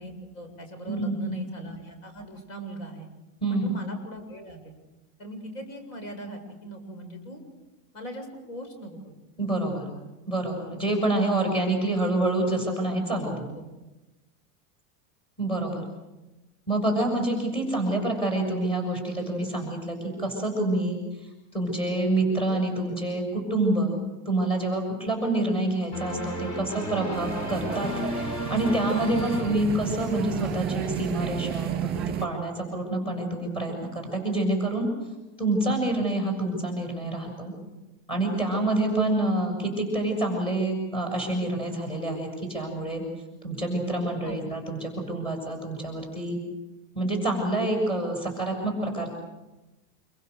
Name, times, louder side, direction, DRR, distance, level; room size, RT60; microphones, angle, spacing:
voice 1, 0.0-3.1 3.4-4.7 5.2-7.4 7.9-9.2 13.2-13.6 44.2-44.5, right 1 dB, 55° left, 5 dB, 7.3 m, -40 dB
voice 2, 0.9-1.4 3.4-3.8 9.4-9.9 10.3-13.4 15.4-15.8 16.7-21.0 21.5-24.0 24.2-27.9 28.5-34.9 35.4-37.5 38.1-43.0 43.4-46.4 46.9-49.1, right 2 dB, 10° left, 3 dB, 6.9 m, -27 dB
sound 1, 25.9-30.4, equal, 35° left, 6.4 m, -34 dB
sound 2, 27.1-32.3, right 9 dB, 20° right, 2.3 m, -32 dB
27.0 x 25.0 x 6.8 m, 1.0 s
supercardioid pair, 165°, 45 cm